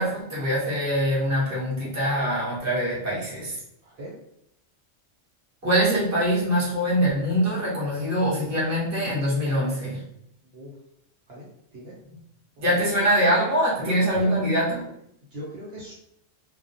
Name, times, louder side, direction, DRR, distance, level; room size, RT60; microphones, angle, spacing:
voice 1, 0.0-3.5 5.6-10.0 12.6-14.8, equal, 15° right, -7 dB, 0.7 m, -23 dB
voice 2, 3.8-4.1 10.4-10.8 11.3-11.5 11.7-11.9 12.7-13.1 13.8-14.4 15.3-15.9, right 1 dB, 60° right, -6 dB, 1.0 m, -38 dB
2.2 x 2.2 x 2.6 m, 0.74 s
omnidirectional pair, 1.3 m